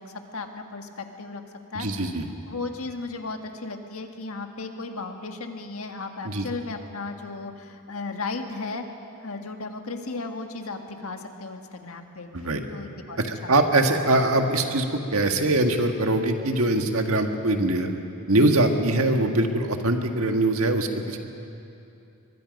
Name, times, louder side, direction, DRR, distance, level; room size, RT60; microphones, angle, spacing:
voice 1, 0.0-1.4 1.7-1.9 2.5-8.9 9.2-12.3 12.7-13.6, left 3 dB, 70° left, 5 dB, 1.6 m, -35 dB
voice 2, 1.8-2.3 6.2-6.5 12.3-12.6 13.2-14.9 15.1-17.9 18.3-21.2, right 2 dB, 70° right, 4 dB, 1.6 m, -22 dB
23.0 x 22.5 x 5.3 m, 2.7 s
head